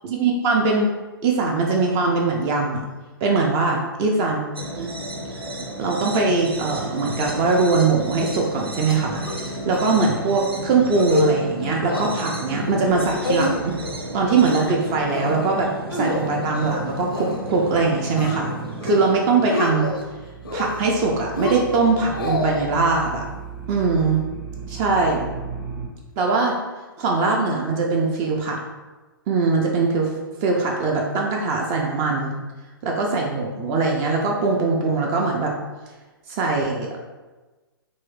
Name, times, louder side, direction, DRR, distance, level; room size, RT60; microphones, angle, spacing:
voice 1, 0.0-0.9 1.2-2.8 3.2-4.4 4.8-4.9 5.8-9.2 9.6-13.7 14.1-18.5 18.8-19.9 20.5-23.2 23.7-24.2 24.7-25.3 26.2-26.6 27.0-28.6 29.3-30.1 30.4-32.4 32.8-35.5 36.3-37.0, right 4 dB, 25° right, 0 dB, 0.4 m, -21 dB
sound 1, 4.5-19.6, right 1 dB, 80° right, 0.5 m, -33 dB
sound 2, 8.9-9.5 9.7-9.8 10.2-10.4 10.8-11.3 11.6-12.1 12.5-12.9 13.2-13.9 14.3-14.8 15.1-15.5 15.9-17.4 17.7-18.4 18.7-19.1 19.4-20.0 20.4-21.0 21.4-22.7, left 2 dB, 70° left, 0.5 m, -27 dB
sound 3, 18.0-19.5 19.7-25.9, right 6 dB, 50° right, 0.7 m, -36 dB
3.0 x 2.7 x 3.1 m, 1.2 s
figure-of-eight pair, 115°, 12 cm